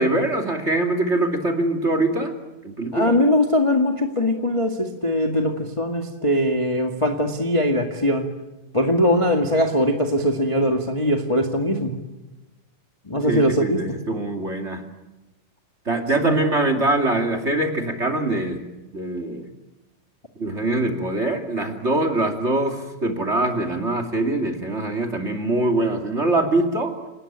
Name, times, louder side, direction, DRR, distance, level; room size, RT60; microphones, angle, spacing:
voice 1, 0.0-2.3 2.6-3.2 13.2-14.8 15.9-18.6 18.9-19.5 20.4-27.0, right 2 dB, 20° right, 4 dB, 2.4 m, -23 dB
voice 2, 2.9-8.3 8.7-11.9 13.1-13.8 16.2-16.4, left 1 dB, 15° left, 3 dB, 1.1 m, -21 dB
29.5 x 19.0 x 8.8 m, 1.0 s
omnidirectional pair, 3.8 m